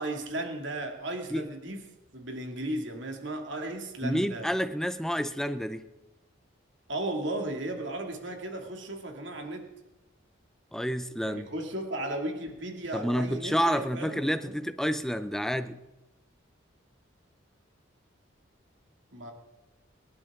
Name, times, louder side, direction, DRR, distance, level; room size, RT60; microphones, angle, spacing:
voice 1, 0.0-1.9 2.1-4.5 6.9-9.7 11.2-14.5 19.1-19.3, right 1 dB, 70° right, 3 dB, 2.5 m, -35 dB
voice 2, 4.0-5.9 10.7-11.5 12.9-15.8, equal, ahead, 11 dB, 0.6 m, -29 dB
23.5 x 11.5 x 3.8 m, 1.1 s
head